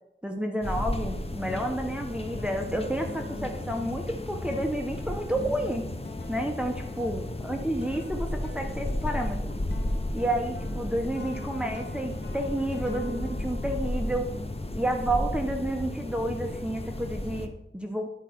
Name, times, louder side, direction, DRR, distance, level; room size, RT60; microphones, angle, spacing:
voice 1, 0.2-5.9 6.3-9.4 10.1-14.3 14.8-18.1, right 1 dB, 5° right, 2 dB, 1.0 m, -30 dB
sound 1, 0.6-17.5, left 1 dB, 30° left, 0.9 m, -34 dB
sound 2, 1.5-14.9, left 3 dB, 55° left, 0.9 m, -46 dB
10.5 x 4.9 x 6.0 m, 0.83 s
wide cardioid pair, 70°, 21 cm